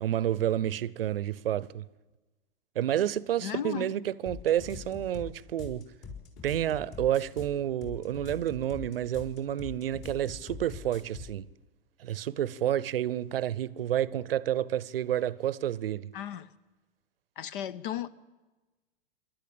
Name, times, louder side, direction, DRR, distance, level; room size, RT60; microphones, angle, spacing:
voice 1, 0.0-1.8 2.8-5.9 6.4-11.5 12.0-16.1, right 11 dB, 75° right, 0.7 m, -30 dB
voice 2, 3.4-4.0 16.1-16.5 17.4-18.1, left 10 dB, 60° left, 1.0 m, -35 dB
sound 1, 4.3-11.4, left 4 dB, 40° left, 4.3 m, -43 dB
26.0 x 12.0 x 8.6 m
hypercardioid pair, 105°, 29 cm